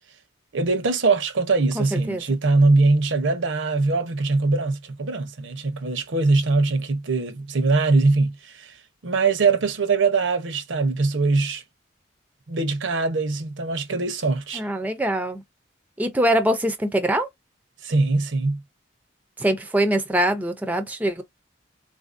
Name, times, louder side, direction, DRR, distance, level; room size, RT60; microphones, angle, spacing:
voice 1, 0.5-8.7 9.0-11.6 12.5-14.6 17.8-18.6, right 3 dB, 80° right, 0.7 m, -22 dB
voice 2, 1.8-2.2 14.5-15.4 16.0-17.3 19.4-21.2, right 1 dB, 10° right, 0.4 m, -23 dB
3.8 x 2.6 x 2.4 m
head